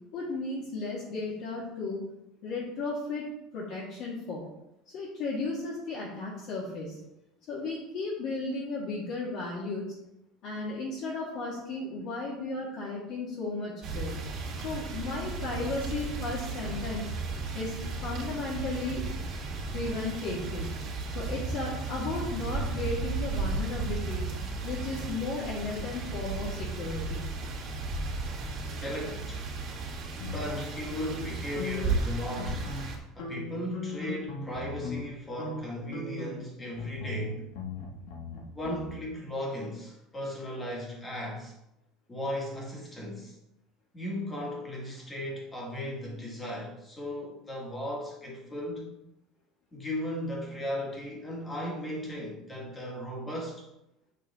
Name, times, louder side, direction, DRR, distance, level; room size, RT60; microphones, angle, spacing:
voice 1, 0.1-2.0 2.4-3.2 3.5-4.4 4.9-7.0 7.5-9.9 10.4-14.1 14.6-17.0 17.5-19.1 19.7-20.7 21.1-24.3 24.6-27.3, left 3 dB, 45° left, -5 dB, 1.9 m, -34 dB
sound 1, 13.8-33.0, right 3 dB, 35° right, 2.0 m, -34 dB
voice 2, 28.6-29.4 30.1-32.7 33.2-37.5 38.5-41.5 42.1-43.3 43.9-48.9 49.7-53.6, left 1 dB, 10° left, -2 dB, 1.9 m, -36 dB
sound 2, 30.2-32.1 32.3-32.9 33.2-35.1 35.4-35.6 35.9-38.9, left 3 dB, 85° left, 2.0 m, -38 dB
8.6 x 6.8 x 3.6 m, 0.87 s
cardioid pair, 170°, 0 cm